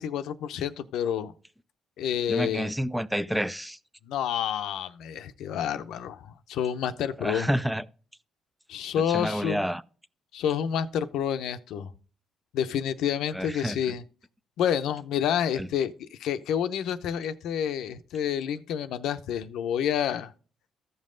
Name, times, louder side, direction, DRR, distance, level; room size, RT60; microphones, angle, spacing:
voice 1, 0.0-1.3 2.0-2.7 4.0-7.5 8.7-9.7 10.3-11.9 12.5-14.0 14.6-20.3, left 9 dB, 85° left, 0.7 m, -29 dB
voice 2, 2.3-3.8 7.2-7.8 9.0-9.8 13.3-13.8 15.6-15.7, equal, 5° right, 0.5 m, -29 dB
14.5 x 5.5 x 3.8 m
cardioid pair, 90°, 0 cm